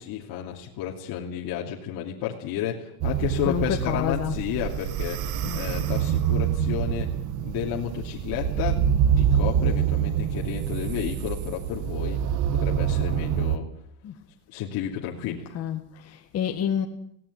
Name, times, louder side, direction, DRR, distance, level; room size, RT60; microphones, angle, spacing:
voice 1, 0.0-7.1 7.4-8.8 9.2-12.2 12.5-13.7 14.5-15.5, left 10 dB, 45° left, 2.8 m, -32 dB
sound 1, 3.0-13.6, right 9 dB, 40° right, 1.3 m, -26 dB
voice 2, 3.5-4.4 5.4-5.7 14.0-14.2 15.2-16.9, left 9 dB, 30° left, 2.0 m, -29 dB
18.5 x 17.5 x 9.3 m
supercardioid pair, 150°, 48 cm